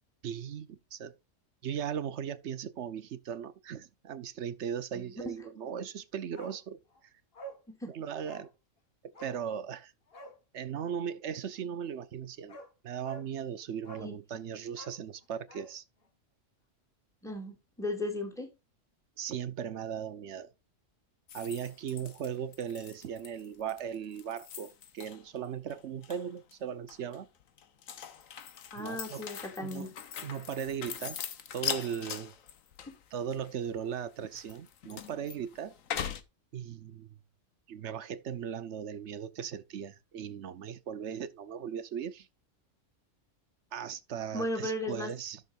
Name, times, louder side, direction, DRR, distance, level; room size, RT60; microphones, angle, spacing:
voice 1, 0.2-1.1 1.6-7.1 7.9-8.5 9.0-9.9 10.5-15.8 19.2-20.5 21.3-27.3 28.8-29.3 29.6-29.9 30.2-31.2 31.5-32.3 33.1-35.8 36.5-37.2 37.7-42.3 43.7-45.4, right 8 dB, 65° right, 1.1 m, -38 dB
Bark, 6.3-6.6 6.9-7.0 7.3-7.6 8.2-8.5 9.1-9.4 10.1-10.4 12.0-12.1 12.5-12.7 13.0-13.3 13.8-14.1 14.7-15.7 16.0-16.1, right 2 dB, 50° left, 1.5 m, -47 dB
voice 2, 17.2-18.5 28.7-29.9 44.3-45.1, left 1 dB, ahead, 2.2 m, -36 dB
sound 1, 21.3-25.4 25.7-26.5 26.9-36.2, left 8 dB, 85° left, 1.3 m, -41 dB
13.5 x 6.5 x 2.5 m
omnidirectional pair, 1.3 m